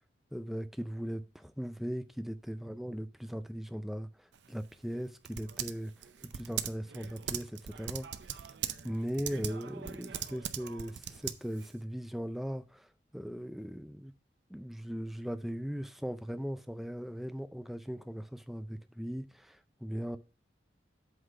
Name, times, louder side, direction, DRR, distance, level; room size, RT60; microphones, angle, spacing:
voice 1, 0.3-8.4 8.8-14.1 14.5-20.2, equal, ahead, 0.4 m, -39 dB
Typing, 4.3-11.8, right 9 dB, 85° right, 0.6 m, -41 dB
8.0 x 4.0 x 5.3 m
head